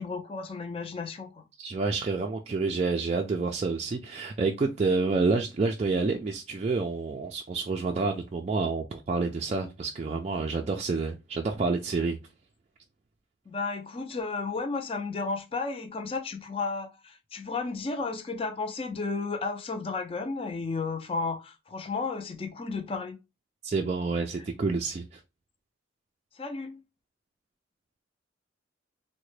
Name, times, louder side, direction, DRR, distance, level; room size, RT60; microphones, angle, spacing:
voice 1, 0.0-1.4 13.5-23.2 26.4-26.8, left 4 dB, 30° left, 0.5 m, -33 dB
voice 2, 1.6-12.2 23.6-25.2, right 3 dB, 35° right, 0.3 m, -28 dB
3.7 x 2.1 x 3.1 m
head